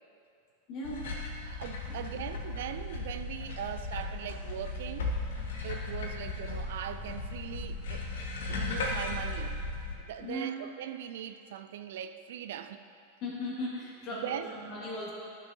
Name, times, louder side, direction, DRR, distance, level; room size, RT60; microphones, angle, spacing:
voice 1, 0.7-1.1 1.9-2.2 10.2-10.6 13.2-15.1, left 1 dB, 40° left, -4 dB, 1.9 m, -38 dB
sound 1, 0.8-9.9, left 2 dB, 60° left, 1.0 m, -36 dB
voice 2, 1.4-5.1 5.6-8.0 8.5-9.6 10.0-12.8 14.2-14.5, right 10 dB, 55° right, 10 dB, 0.3 m, -40 dB
13.0 x 6.0 x 2.8 m, 2.6 s
figure-of-eight pair, 90°, 0 cm